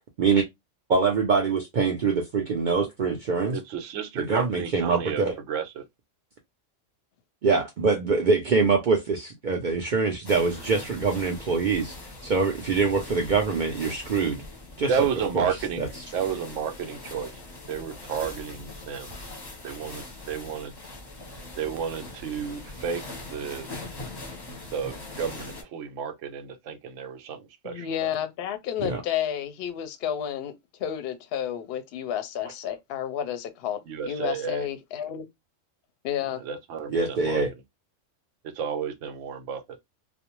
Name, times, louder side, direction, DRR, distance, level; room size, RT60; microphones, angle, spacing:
voice 1, 0.9-3.6 4.2-5.3 7.4-11.9 12.2-14.4 14.8-15.1 15.3-15.5 15.8-15.9 28.8-29.0 36.9-37.5, right 4 dB, 60° right, 0.5 m, -24 dB
voice 2, 3.5-5.8 14.9-17.3 17.7-19.1 19.6-20.7 21.6-23.0 23.3-23.7 24.7-28.1 33.9-34.7 36.5-37.4 38.4-39.6, right 7 dB, 75° right, 0.9 m, -32 dB
sound 1, 10.2-25.6, left 2 dB, 25° left, 0.7 m, -41 dB
voice 3, 27.6-30.5 30.8-35.3 36.0-36.4, left 9 dB, 60° left, 0.7 m, -31 dB
2.4 x 2.0 x 2.9 m
omnidirectional pair, 1.3 m